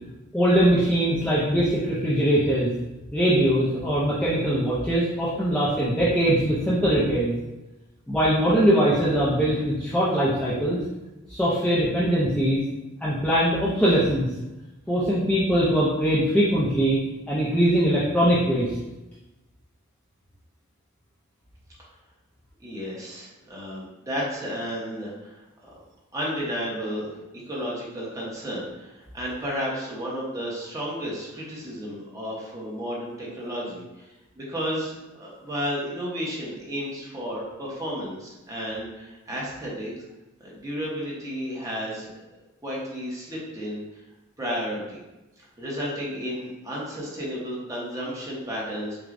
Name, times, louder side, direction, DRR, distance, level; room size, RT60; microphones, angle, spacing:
voice 1, 0.3-2.7 3.1-7.3 8.1-10.8 11.3-12.6 13.0-14.3 14.9-17.0 17.3-18.7, equal, 5° left, -9 dB, 0.6 m, -21 dB
voice 2, 22.6-25.4 26.1-34.1 34.3-39.9 40.4-42.1 42.6-43.8 44.4-45.0 45.4-49.0, equal, 15° right, -6 dB, 1.0 m, -32 dB
6.1 x 2.3 x 2.5 m, 1.0 s
head